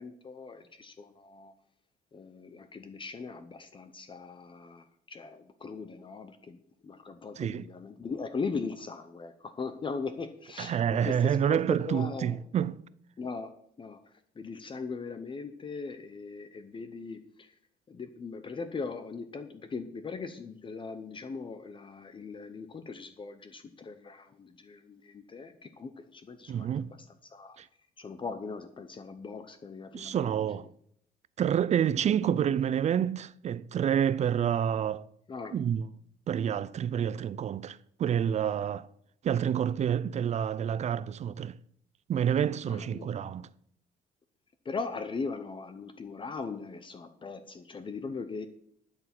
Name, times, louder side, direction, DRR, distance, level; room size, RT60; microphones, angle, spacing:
voice 1, 0.0-1.5 2.1-11.6 11.9-12.4 13.2-13.5 13.8-14.0 14.4-17.5 17.9-27.0 27.3-27.6 28.0-30.5 35.3-35.6 42.7-43.2 44.6-48.5, left 4 dB, 30° left, 0.9 m, -39 dB
voice 2, 10.6-12.8 26.5-26.9 27.6-27.7 29.9-30.7 31.4-35.1 35.5-35.9 36.3-38.9 39.2-41.6 42.1-43.5, right 9 dB, 40° right, 0.5 m, -28 dB
12.0 x 7.2 x 6.0 m
cardioid pair, 110°, 17 cm